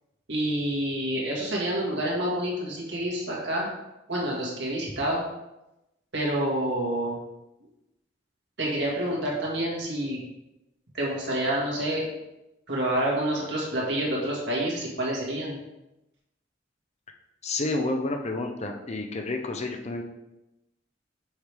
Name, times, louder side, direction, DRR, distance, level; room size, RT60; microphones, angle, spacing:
voice 1, 0.3-3.7 4.1-5.2 6.1-7.2 8.6-10.2 10.9-12.0 12.7-15.6, right 1 dB, 70° right, -4 dB, 2.0 m, -28 dB
voice 2, 17.4-20.0, left 2 dB, 40° left, 4 dB, 0.6 m, -30 dB
6.5 x 4.9 x 3.5 m, 0.94 s
head